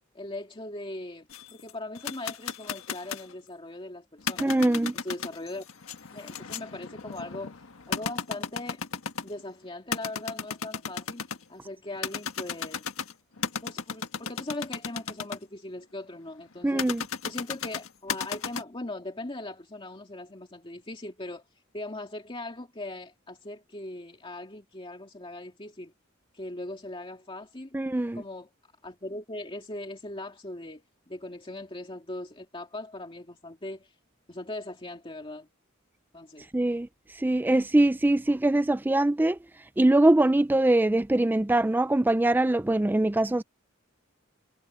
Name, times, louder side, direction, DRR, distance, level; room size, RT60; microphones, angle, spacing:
voice 1, 0.1-4.7 4.9-5.7 6.1-7.5 7.9-8.8 9.2-12.9 13.6-16.9 17.2-21.4 21.7-25.9 26.3-27.8 28.1-28.5 28.8-33.9 34.3-35.5 36.1-36.5, left 2 dB, 25° left, 2.3 m, -40 dB
sound 1, 1.3-3.3 4.2-9.4 9.9-11.4 12.0-15.4 16.8-18.6, left 6 dB, 85° left, 1.5 m, -34 dB
voice 2, 4.4-4.9 16.6-17.0 27.7-28.2 36.5-36.9 37.2-39.4 39.8-43.4, right 1 dB, 10° right, 0.4 m, -23 dB
head